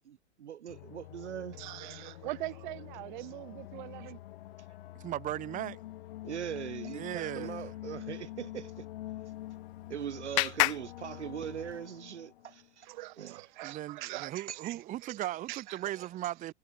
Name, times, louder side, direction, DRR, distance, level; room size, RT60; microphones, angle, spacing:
voice 1, 0.1-1.6 6.2-8.9 9.9-12.9 13.2-13.4 14.5-14.6, right 9 dB, 75° right, 0.6 m, -40 dB
sound 1, 0.7-12.7, left 15 dB, 50° left, 4.6 m, -46 dB
voice 2, 1.5-4.2 12.8-16.1, right 19 dB, 45° right, 0.9 m, -43 dB
voice 3, 4.9-5.8 6.9-7.6 13.6-16.5, right 14 dB, 20° right, 1.0 m, -37 dB
Clapping, 9.2-11.9, left 26 dB, 30° left, 0.5 m, -33 dB
figure-of-eight pair, 100°, 35 cm